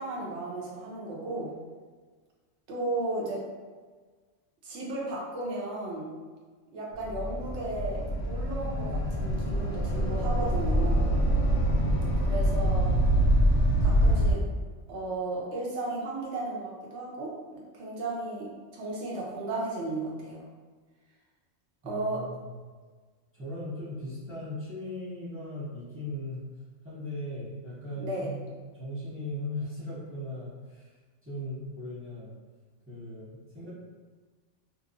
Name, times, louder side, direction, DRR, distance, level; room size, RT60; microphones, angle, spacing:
voice 1, 0.0-1.5 2.7-3.4 4.6-6.1 6.7-11.1 12.2-12.9 13.8-14.4 14.9-20.5 21.8-22.2 28.0-28.3, right 2 dB, 70° right, -4 dB, 0.9 m, -34 dB
sound 1, 7.0-14.3, right 1 dB, 70° left, 0.8 m, -25 dB
voice 2, 21.8-22.6 23.3-26.4 26.8-30.9 31.2-32.3 32.9-33.7, left 1 dB, 20° right, -10 dB, 0.4 m, -38 dB
2.8 x 2.0 x 2.5 m, 1.4 s
omnidirectional pair, 1.3 m